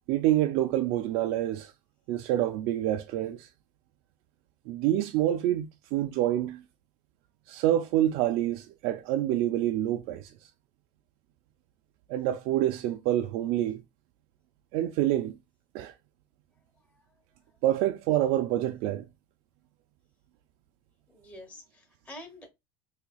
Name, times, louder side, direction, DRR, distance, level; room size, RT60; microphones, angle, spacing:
voice 1, 0.1-1.7 2.1-3.5 4.7-6.6 7.5-10.5 12.1-13.8 14.7-15.4 15.7-15.9 17.6-19.0, right 13 dB, 55° right, 0.4 m, -27 dB
voice 2, 16.8-17.1 21.1-22.5, left 1 dB, 10° left, 1.0 m, -48 dB
4.0 x 2.8 x 2.3 m
supercardioid pair, 140°, 12 cm